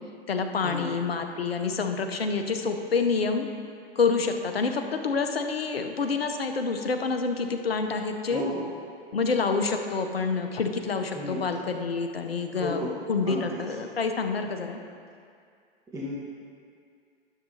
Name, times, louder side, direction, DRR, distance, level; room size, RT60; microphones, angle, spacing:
voice 1, 0.3-3.5 4.0-8.4 9.1-14.8, left 4 dB, 80° left, 6 dB, 0.8 m, -27 dB
voice 2, 8.3-8.6 11.1-11.4 12.5-12.9 13.2-13.5 15.9-16.1, left 1 dB, 10° right, -7 dB, 1.3 m, -32 dB
12.5 x 7.3 x 2.8 m, 2.3 s
figure-of-eight pair, 100°, 30 cm